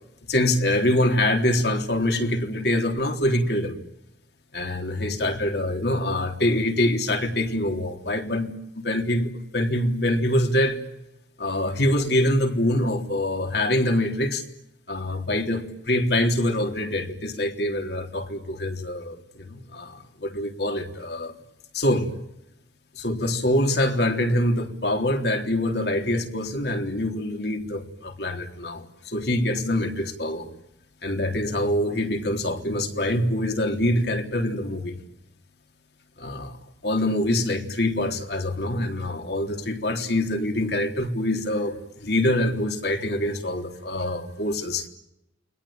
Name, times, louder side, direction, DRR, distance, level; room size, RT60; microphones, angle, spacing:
voice 1, 0.3-3.8 4.5-10.9 11.4-14.4 14.9-21.3 21.7-22.1 23.0-30.5 31.0-35.0 36.2-36.6 36.8-44.9, left 1 dB, 60° left, 3.6 m, -25 dB
29.5 x 22.5 x 9.0 m
head